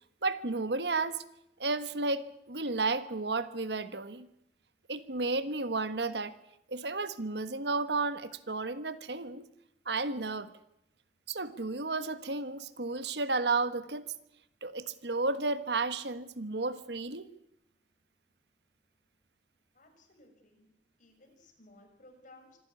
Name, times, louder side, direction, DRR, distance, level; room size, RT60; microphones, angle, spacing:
voice 1, 0.2-1.2 1.6-4.3 4.9-6.4 6.7-9.5 9.8-10.5 11.3-14.1 14.6-17.3, right 3 dB, 70° right, 13 dB, 1.4 m, -32 dB
voice 2, 19.7-20.7 21.0-22.6, left 2 dB, 45° left, 4 dB, 6.4 m, -58 dB
25.5 x 15.0 x 9.7 m, 0.80 s
head